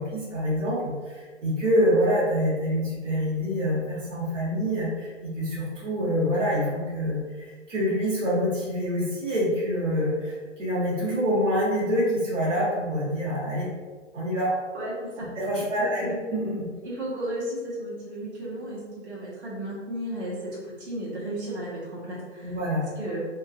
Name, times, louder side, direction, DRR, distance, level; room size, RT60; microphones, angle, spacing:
voice 1, 0.0-13.7 14.1-14.5 15.2-16.6 22.4-22.9, equal, 90° right, -6 dB, 1.4 m, -26 dB
voice 2, 14.7-15.3 15.8-16.2 16.8-22.6 23.0-23.2, right 1 dB, 65° right, -6 dB, 1.3 m, -34 dB
3.6 x 2.6 x 2.4 m, 1.5 s
hypercardioid pair, 140°, 36 cm